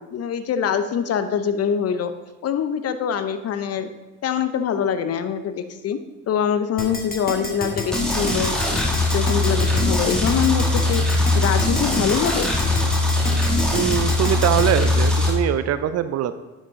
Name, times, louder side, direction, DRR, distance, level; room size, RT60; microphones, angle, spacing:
voice 1, 0.0-2.1 2.4-3.9 4.2-6.0 6.3-8.5 9.1-11.1 11.3-12.5, left 8 dB, 45° left, 11 dB, 0.7 m, -24 dB
Keyboard (musical), 6.8-14.6, left 2 dB, 25° left, 2.2 m, -28 dB
sound 1, 7.9-15.3, left 2 dB, ahead, 2.1 m, -21 dB
voice 2, 13.7-16.4, right 11 dB, 45° right, 12 dB, 0.5 m, -22 dB
10.5 x 5.3 x 3.7 m, 1.2 s
hypercardioid pair, 55°, 35 cm